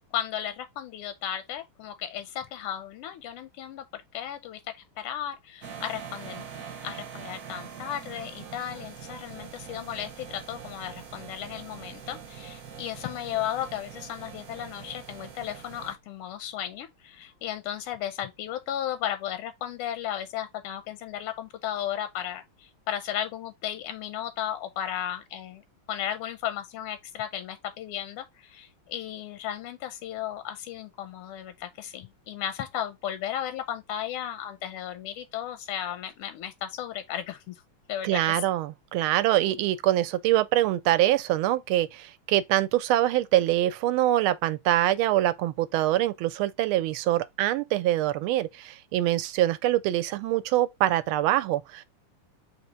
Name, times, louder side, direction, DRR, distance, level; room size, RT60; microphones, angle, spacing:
voice 1, 0.1-4.6 5.0-6.4 6.8-25.6 25.9-37.6 37.9-38.4, left 11 dB, 85° left, 1.5 m, -35 dB
sound 1, 5.6-15.9, right 7 dB, 55° right, 1.1 m, -43 dB
voice 2, 38.0-51.8, right 14 dB, 80° right, 1.4 m, -24 dB
3.9 x 2.9 x 4.3 m
omnidirectional pair, 2.4 m